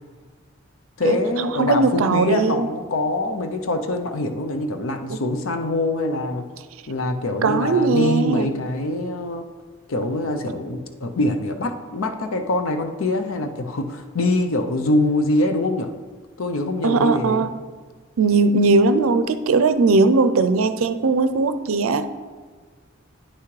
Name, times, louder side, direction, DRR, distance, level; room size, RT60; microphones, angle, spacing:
voice 1, 1.0-6.4 6.9-9.4 9.9-15.9 16.4-17.5, left 2 dB, 75° left, 6 dB, 0.6 m, -24 dB
voice 2, 1.6-2.7 5.1-5.2 7.4-8.5 16.8-17.5 18.2-22.1, right 3 dB, 80° right, 11 dB, 0.5 m, -19 dB
9.7 x 5.8 x 3.2 m, 1.5 s
head